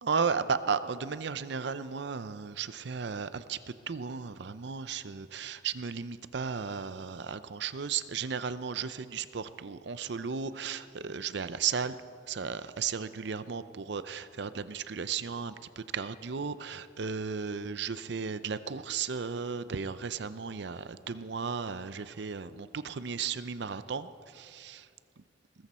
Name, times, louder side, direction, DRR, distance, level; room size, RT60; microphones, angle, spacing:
voice 1, 0.0-12.0 12.3-24.9, right 6 dB, 60° right, 14 dB, 0.6 m, -35 dB
20.5 x 14.5 x 4.3 m, 2.3 s
head